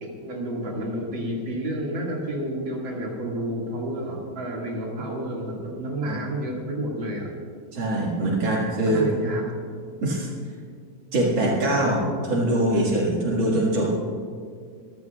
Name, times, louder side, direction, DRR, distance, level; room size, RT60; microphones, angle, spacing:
voice 1, 0.0-7.3 8.2-8.3 8.8-9.4, right 1 dB, 50° right, -2 dB, 1.4 m, -30 dB
voice 2, 7.7-9.1 10.0-10.3 11.1-13.9, right 1 dB, 70° right, -4 dB, 1.1 m, -23 dB
26.0 x 14.5 x 2.4 m, 2.1 s
omnidirectional pair, 5.4 m